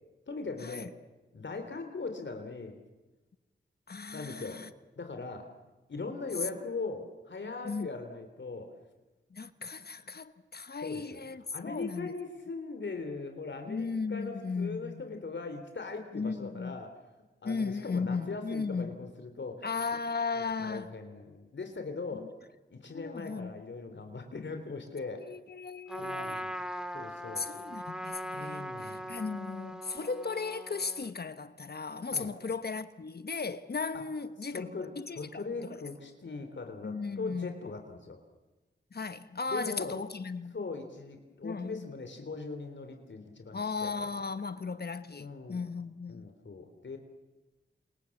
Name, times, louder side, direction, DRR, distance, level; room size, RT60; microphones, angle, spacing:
voice 1, 0.3-0.9 1.3-2.8 4.1-4.6 5.0-5.5 5.9-8.7 10.8-11.2 11.5-16.9 17.4-19.7 20.3-22.3 22.7-25.3 25.9-26.5 26.9-27.5 28.3-29.1 32.1-32.3 33.9-34.0 34.5-38.2 39.5-39.9 40.5-44.1 45.2-45.6 46.1-47.0, left 3 dB, 70° left, 3.5 m, -40 dB
voice 2, 3.9-4.7 7.6-7.9 9.3-12.1 13.7-15.0 16.1-16.8 17.4-19.1 19.6-20.9 22.1-22.3 22.9-23.5 25.2-26.4 27.4-35.4 35.7-35.8 36.8-37.5 38.9-40.5 41.4-41.9 43.5-46.3, left 4 dB, 55° left, 1.2 m, -36 dB
Trumpet, 25.9-31.1, equal, 5° right, 2.1 m, -40 dB
29.0 x 27.0 x 7.3 m
wide cardioid pair, 65°, 20 cm